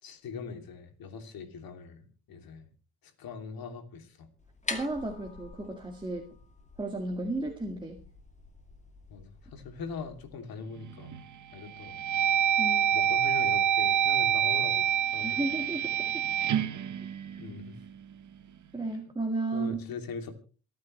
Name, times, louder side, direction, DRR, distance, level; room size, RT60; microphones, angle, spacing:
voice 1, 0.0-2.7 3.0-4.3 9.1-11.1 11.5-12.0 12.9-15.5 17.4-17.8 19.5-20.3, left 5 dB, 70° left, 6 dB, 3.1 m, -41 dB
sound 1, 4.4-10.4, left 3 dB, 20° left, 2.2 m, -45 dB
voice 2, 4.7-6.3 6.8-8.0 12.6-12.9 15.2-16.3 17.3-17.4 18.7-19.8, right 2 dB, 10° right, 1 dB, 2.0 m, -33 dB
sound 2, 10.8-11.2 11.7-17.9, right 10 dB, 50° right, 1.1 m, -27 dB
27.5 x 9.4 x 3.3 m, 0.37 s
cardioid pair, 110°, 37 cm